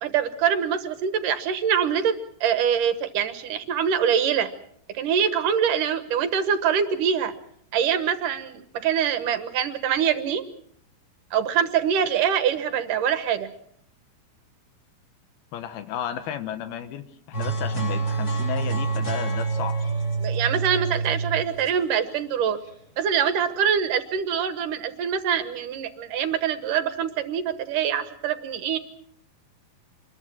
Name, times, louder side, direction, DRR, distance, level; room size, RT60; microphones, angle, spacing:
voice 1, 0.0-2.2 2.4-4.5 4.9-7.3 7.7-10.4 11.3-13.5 20.2-22.6 23.0-28.8, right 8 dB, 65° right, 11 dB, 2.5 m, -24 dB
voice 2, 15.5-19.8, left 10 dB, 80° left, 9 dB, 3.0 m, -33 dB
sound 1, 17.3-22.7, right 4 dB, 20° left, 6.0 m, -27 dB
26.5 x 21.5 x 6.1 m, 0.67 s
omnidirectional pair, 4.4 m